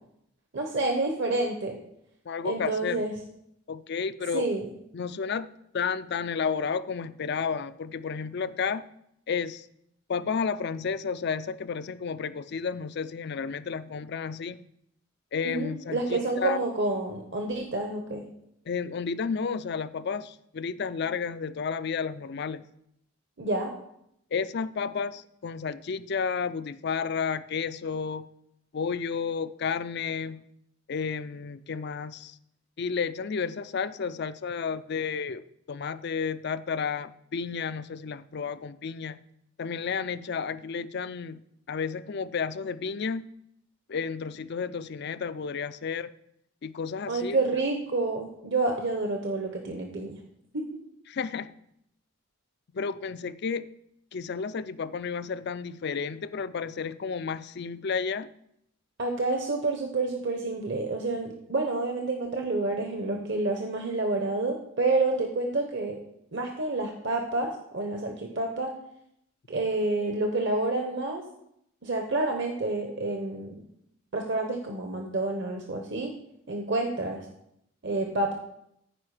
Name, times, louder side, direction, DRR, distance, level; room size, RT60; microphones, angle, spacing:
voice 1, 0.5-1.8 2.4-3.1 4.3-4.7 15.4-18.2 23.4-23.7 47.1-50.2 50.5-50.6 59.0-66.0 66.3-68.7 69.5-71.2 71.8-73.6 74.1-76.1 76.5-77.2 77.8-78.3, right 2 dB, 55° right, 3 dB, 1.0 m, -29 dB
voice 2, 2.3-3.1 3.7-4.5 4.9-5.5 5.7-8.8 9.3-9.7 10.1-14.6 15.3-16.6 18.7-22.6 24.3-28.3 28.7-30.4 30.9-32.4 32.8-35.4 35.7-39.2 39.6-41.4 41.7-43.3 43.9-46.1 46.6-47.4 51.1-51.5 52.7-53.7 54.1-58.3, left 5 dB, 50° left, 14 dB, 0.4 m, -32 dB
14.5 x 5.1 x 4.9 m, 0.77 s
head